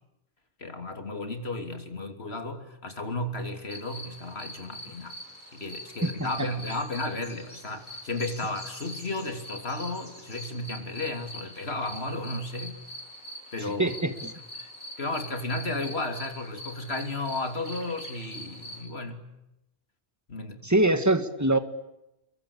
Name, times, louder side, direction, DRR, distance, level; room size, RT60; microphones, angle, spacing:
voice 1, 0.6-5.1 5.5-12.8 13.5-13.9 15.0-19.3 20.3-20.7, left 2 dB, 65° left, 6 dB, 3.4 m, -33 dB
sound 1, 3.7-18.8, left 1 dB, 40° left, 6.8 m, -44 dB
voice 2, 6.0-6.5 13.8-14.3 20.6-21.6, right 2 dB, 15° right, 9 dB, 2.0 m, -24 dB
29.5 x 23.0 x 8.6 m, 0.90 s
omnidirectional pair, 1.2 m